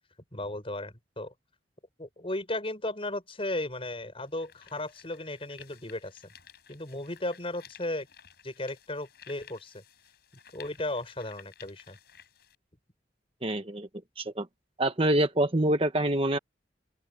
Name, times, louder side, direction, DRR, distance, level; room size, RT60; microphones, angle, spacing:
voice 1, 0.3-1.3 2.0-6.2 6.7-8.1 8.4-9.8 10.5-12.0, left 1 dB, 30° left, 6.1 m, -35 dB
sound 1, 3.3-3.4 4.1-12.5, left 8 dB, 60° left, 7.7 m, -55 dB
voice 2, 13.4-13.9 14.2-14.5 14.8-16.4, right 1 dB, 30° right, 1.2 m, -26 dB
open air
head